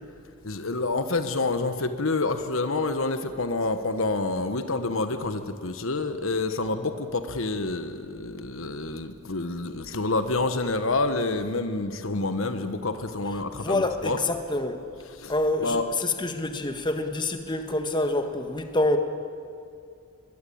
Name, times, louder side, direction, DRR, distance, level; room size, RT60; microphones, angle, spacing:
voice 1, 0.4-14.2 15.2-15.3 15.6-15.9, left 3 dB, 70° left, 1.3 m, -28 dB
voice 2, 13.5-14.8 15.3-19.0, left 2 dB, 20° left, 1.5 m, -27 dB
23.0 x 21.0 x 8.7 m
head